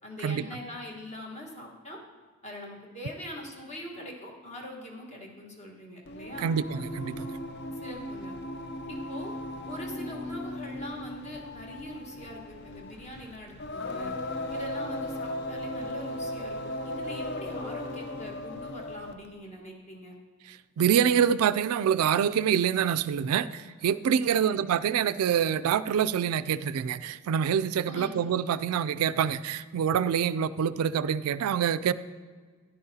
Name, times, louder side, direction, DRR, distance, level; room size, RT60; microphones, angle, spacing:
voice 1, 0.0-2.0 2.4-6.5 7.8-8.3 8.9-9.3 9.6-14.1 14.5-20.1 24.3-24.6 27.8-28.2, left 1 dB, 30° left, -1 dB, 1.4 m, -42 dB
Singing, 6.1-19.3, left 1 dB, 45° left, 0.5 m, -37 dB
voice 2, 6.4-7.3 20.5-31.9, right 8 dB, 80° right, 16 dB, 0.3 m, -26 dB
12.5 x 10.0 x 2.8 m, 1.5 s
head